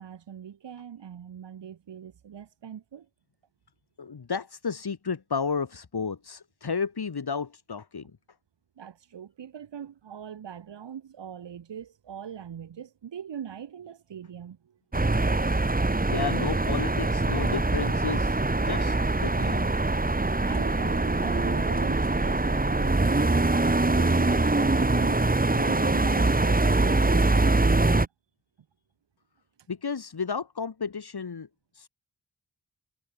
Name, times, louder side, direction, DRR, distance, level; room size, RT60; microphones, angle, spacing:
voice 1, 0.0-3.1 8.8-14.8 20.4-28.1, right 8 dB, 85° right, 3.5 m, -41 dB
voice 2, 4.0-8.1 16.1-18.4 18.7-19.8 29.7-31.5 31.7-31.9, left 5 dB, 65° left, 7.4 m, -32 dB
sound 1, 14.9-28.1, right 2 dB, 20° right, 2.0 m, -23 dB
cardioid pair, 40°, 42 cm